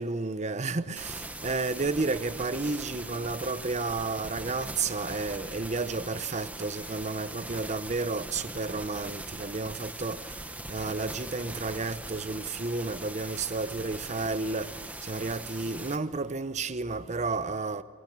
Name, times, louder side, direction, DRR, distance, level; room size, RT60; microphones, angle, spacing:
voice 1, 0.0-10.2 10.7-14.7 15.0-17.8, right 3 dB, 30° right, 0.7 m, -32 dB
sound 1, 1.0-16.0, right 1 dB, 5° right, 0.9 m, -41 dB
23.5 x 18.0 x 7.3 m
head